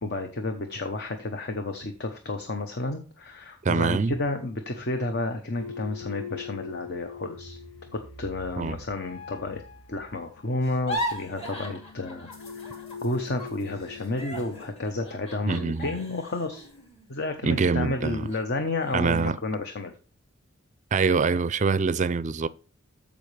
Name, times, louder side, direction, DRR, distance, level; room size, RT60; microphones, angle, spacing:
voice 1, 0.0-7.6 7.9-9.6 9.9-12.3 12.5-16.7 17.1-19.9, left 2 dB, 55° left, 1.0 m, -31 dB
voice 2, 3.6-4.1 8.6-8.8 15.5-15.9 17.4-18.3 18.9-19.4 20.9-22.5, right 4 dB, 35° right, 0.4 m, -24 dB
sound 1, 5.5-14.6, left 6 dB, 80° left, 2.2 m, -43 dB
sound 2, 10.6-13.1 13.4-17.8 18.3-18.4 18.8-19.3, equal, 30° left, 2.4 m, -38 dB
14.0 x 5.2 x 3.3 m
head